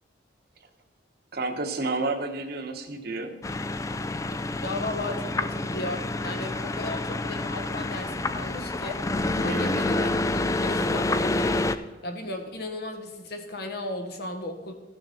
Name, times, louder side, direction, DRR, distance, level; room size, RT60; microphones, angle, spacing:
voice 1, 1.3-3.3 9.4-9.9, right 3 dB, 60° right, 5 dB, 1.1 m, -31 dB
sound 1, 3.4-11.8, left 2 dB, 15° left, 0.3 m, -28 dB
voice 2, 4.6-9.0 9.4-11.6 12.0-14.7, left 2 dB, 60° left, 4 dB, 1.4 m, -35 dB
14.5 x 6.5 x 4.3 m, 1.1 s
head